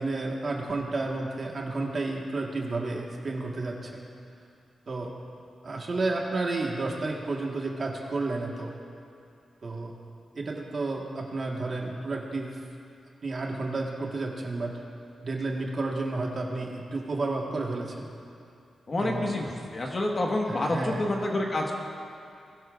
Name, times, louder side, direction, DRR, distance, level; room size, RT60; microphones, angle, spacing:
voice 1, 0.0-4.1 4.9-5.1 5.6-8.7 9.6-9.9 10.3-12.6 13.2-14.7 15.2-18.1 19.0-19.4 20.5-21.1, right 3 dB, 45° right, -1 dB, 1.5 m, -31 dB
voice 2, 18.9-21.8, left 1 dB, 35° left, 0 dB, 1.4 m, -28 dB
20.0 x 12.0 x 2.5 m, 2.4 s
wide cardioid pair, 120°, 0 cm